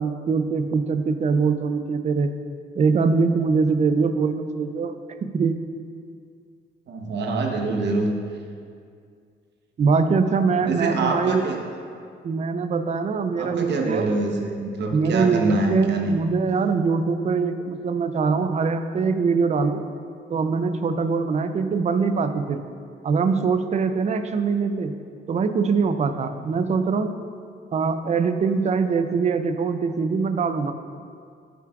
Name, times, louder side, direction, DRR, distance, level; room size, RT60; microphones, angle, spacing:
voice 1, 0.0-2.3 2.8-5.6 9.8-11.4 12.2-14.1 14.9-19.8 20.3-22.6 23.0-24.9 25.3-27.2 27.7-30.7, right 5 dB, 35° right, 10 dB, 0.4 m, -23 dB
voice 2, 6.9-8.1 10.6-11.6 13.4-16.2, right 2 dB, 60° right, 2 dB, 1.0 m, -25 dB
9.2 x 7.4 x 2.4 m, 2.2 s
cardioid pair, 90°, 20 cm